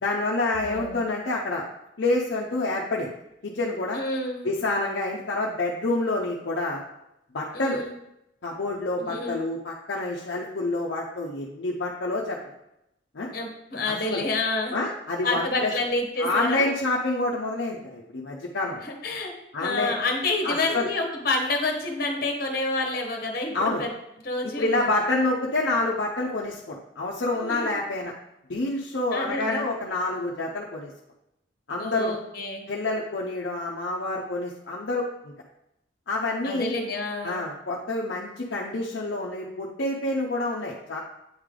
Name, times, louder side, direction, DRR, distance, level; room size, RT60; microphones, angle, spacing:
voice 1, 0.0-1.6 2.0-3.1 3.4-4.0 4.4-6.8 7.3-7.8 8.4-12.5 13.1-13.3 13.9-14.2 14.7-15.7 16.2-18.9 19.5-19.9 20.4-20.9 23.5-23.8 24.6-28.1 28.5-30.9 31.7-32.2 32.7-35.3 36.1-36.7 37.2-41.0, left 2 dB, 65° left, -3 dB, 0.6 m, -28 dB
voice 2, 0.6-1.0 3.9-4.5 7.5-7.9 9.0-9.3 13.3-14.8 15.2-16.7 18.8-19.3 19.6-23.9 24.2-24.9 27.4-27.7 29.1-29.6 31.8-32.6 36.4-37.4, left 2 dB, 50° left, 2 dB, 1.1 m, -28 dB
8.7 x 3.3 x 3.7 m, 0.86 s
head